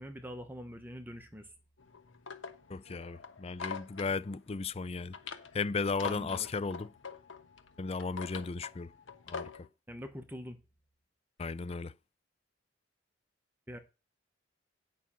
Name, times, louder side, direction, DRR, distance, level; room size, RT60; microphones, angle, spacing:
voice 1, 0.0-1.5 6.0-6.5 9.9-10.6 13.7-13.8, equal, 10° right, 1.1 m, -44 dB
sound 1, 1.8-9.7, left 6 dB, 90° left, 1.1 m, -45 dB
voice 2, 2.7-5.2 5.5-6.9 7.8-8.9 9.3-9.7 11.4-11.9, left 4 dB, 30° left, 0.4 m, -35 dB
9.2 x 6.0 x 5.8 m
head